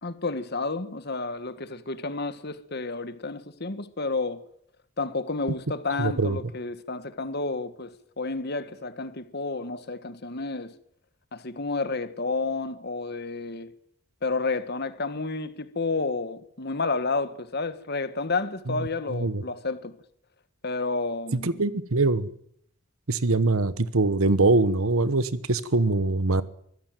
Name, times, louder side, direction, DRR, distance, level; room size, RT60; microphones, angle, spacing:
voice 1, 0.0-4.5 5.0-10.8 11.3-13.7 14.2-20.0 20.6-21.6, left 3 dB, 50° left, 1.6 m, -31 dB
voice 2, 6.0-6.4 19.2-19.4 21.3-22.3 23.1-26.4, right 3 dB, 85° right, 1.2 m, -23 dB
24.0 x 15.5 x 9.1 m
head